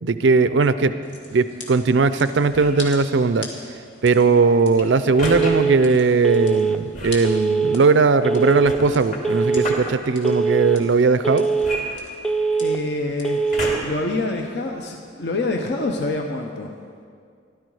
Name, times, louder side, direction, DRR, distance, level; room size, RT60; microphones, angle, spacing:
voice 1, 0.0-0.9 1.3-3.5 4.0-11.5, right 4 dB, 75° right, 12 dB, 0.5 m, -18 dB
sound 1, 1.0-13.6, left 3 dB, 80° left, 2.3 m, -43 dB
sound 2, 2.5-2.9 5.2-5.5 6.9-7.3 8.6-9.9 11.6-12.6 13.5-14.1 14.7-14.8, left 1 dB, 40° left, 2.3 m, -31 dB
Telephone, 5.2-5.8 6.2-6.8 7.2-7.8 8.2-8.8 9.2-9.8 10.2-10.8 11.2-11.8 12.2-12.8 13.2-13.8, right 4 dB, 5° left, 0.4 m, -22 dB
voice 2, 12.6-13.4 13.8-16.7, left 2 dB, 60° left, 2 dB, 0.8 m, -26 dB
16.5 x 12.0 x 4.8 m, 2.2 s
head